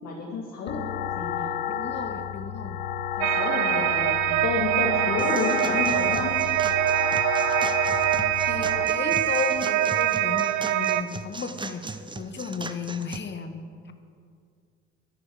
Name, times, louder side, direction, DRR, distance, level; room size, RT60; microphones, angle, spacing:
voice 1, 0.0-0.9 1.2-1.5 3.1-6.4 10.7-10.9, left 4 dB, 50° left, -3 dB, 2.7 m, -30 dB
voice 2, 0.6-1.2 1.7-2.8 8.4-13.9, left 5 dB, 30° left, 7 dB, 1.5 m, -34 dB
sound 1, 0.7-8.8, left 9 dB, 70° left, 0.7 m, -31 dB
sound 2, 3.2-11.0, right 13 dB, 50° right, 0.6 m, -24 dB
sound 3, 5.2-13.2, right 3 dB, 15° right, 0.9 m, -39 dB
23.0 x 10.5 x 5.0 m, 2.2 s
figure-of-eight pair, 55°, 37 cm